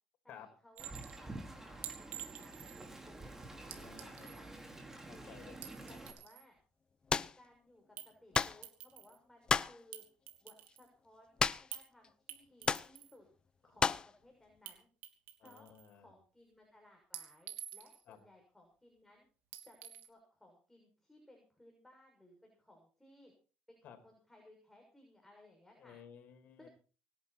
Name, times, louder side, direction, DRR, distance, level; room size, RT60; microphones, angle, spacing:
voice 1, 0.2-3.3 4.0-5.4 5.9-6.6 7.4-10.0 10.4-13.3 13.6-14.9 15.4-15.7 15.9-19.3 19.6-23.3 23.7-26.0 26.6-26.7, left 1 dB, 5° left, 1 dB, 6.7 m, -62 dB
Wind, 0.8-6.1, right 2 dB, 10° right, 4.6 m, -49 dB
Chink clink, 0.8-1.2 1.8-2.9 3.7-4.5 5.5-6.5 8.0-8.1 8.4-9.2 9.9-10.9 11.7-11.9 12.3-13.2 14.7-14.8 15.0-15.9 17.1-18.1 19.5-20.1, right 12 dB, 70° right, 3.1 m, -49 dB
voice 2, 3.7-4.4 5.0-6.0 15.4-16.1 18.1-18.2 23.8-24.0 25.8-26.7, left 8 dB, 55° left, 7 dB, 5.0 m, -56 dB
sound 1, 7.1-7.3 8.3-8.6 9.5-9.8 11.4-11.8 12.0-12.1 12.6-12.9 13.8-14.1, left 5 dB, 25° left, 0.7 m, -31 dB
24.5 x 11.0 x 4.4 m, 0.38 s
cardioid pair, 110°, 3 cm